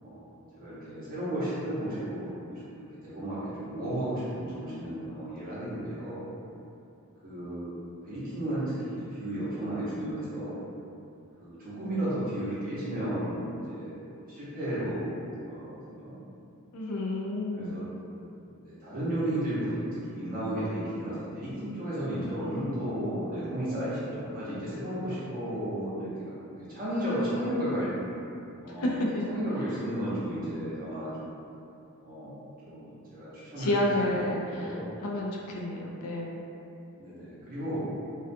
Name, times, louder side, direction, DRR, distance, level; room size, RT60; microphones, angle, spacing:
voice 1, 0.0-6.2 7.2-7.7 8.0-10.6 11.4-14.0 14.3-16.1 17.5-17.8 18.4-19.8 20.1-26.3 26.7-27.9 28.6-29.0 29.3-31.4 32.0-34.8 37.0-37.8, right 1 dB, 40° right, -10 dB, 0.8 m, -34 dB
voice 2, 16.7-17.8 28.8-29.2 33.6-34.7 35.0-36.4, left 1 dB, 70° left, -2 dB, 0.4 m, -30 dB
2.4 x 2.3 x 2.5 m, 2.7 s
head